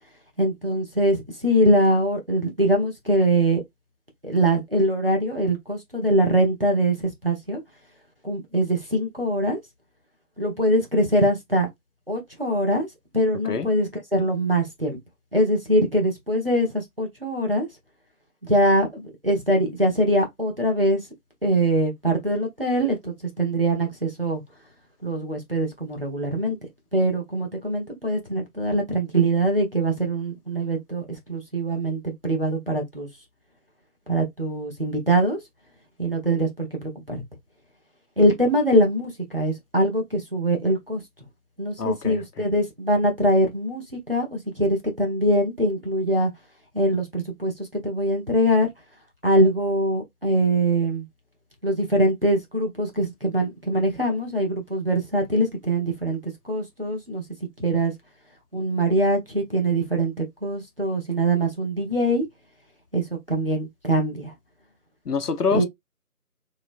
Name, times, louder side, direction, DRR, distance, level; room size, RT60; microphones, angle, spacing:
voice 1, 0.4-3.6 4.2-7.6 8.2-9.6 10.4-11.7 12.1-12.9 13.1-15.0 15.3-17.7 18.4-21.0 21.4-24.4 25.0-26.6 26.9-33.1 34.1-35.4 36.0-37.2 38.2-41.0 41.6-46.3 46.7-48.7 49.2-51.0 51.6-56.2 56.4-57.2 57.6-57.9 58.5-62.2 62.9-64.3 65.5-65.6, right 1 dB, 40° right, 1.0 m, -23 dB
voice 2, 41.8-42.5 65.1-65.6, left 5 dB, 85° left, 0.8 m, -26 dB
3.1 x 3.1 x 2.5 m
figure-of-eight pair, 180°, 45 cm